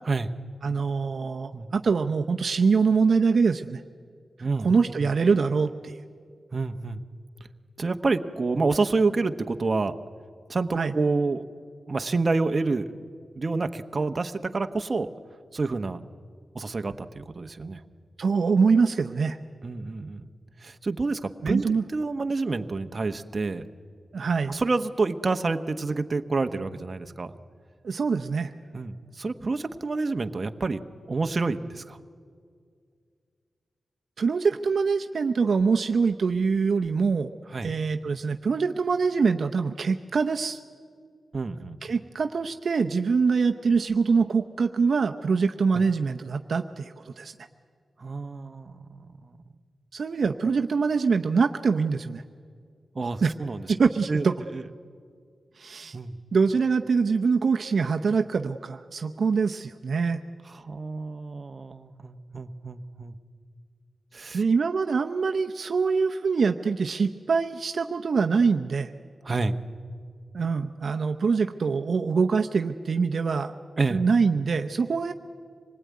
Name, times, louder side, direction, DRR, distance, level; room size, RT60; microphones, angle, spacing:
voice 1, 0.6-3.8 4.6-6.0 10.7-10.9 18.2-19.4 21.4-21.8 24.1-24.5 27.8-28.5 34.2-37.3 37.6-40.6 41.8-47.3 49.9-52.2 53.2-53.3 53.7-54.4 55.6-56.0 56.3-60.2 64.3-68.9 70.3-73.5 73.9-75.1, right 5 dB, 60° right, 6 dB, 0.7 m, -24 dB
voice 2, 6.5-7.0 7.8-10.0 10.5-11.4 11.9-12.9 13.3-15.1 15.5-16.0 16.5-17.8 19.6-20.3 20.6-23.6 24.5-27.4 28.7-30.8 31.1-32.0 37.5-37.7 41.3-41.8 45.7-45.8 48.0-49.4 52.9-53.7 54.1-54.2 54.5-54.6 55.9-56.2 60.5-63.1 64.1-64.4 69.2-69.5 73.8-74.0, right 3 dB, 35° right, 7 dB, 1.0 m, -28 dB
26.0 x 20.0 x 9.5 m, 2.1 s
wide cardioid pair, 115°, 0 cm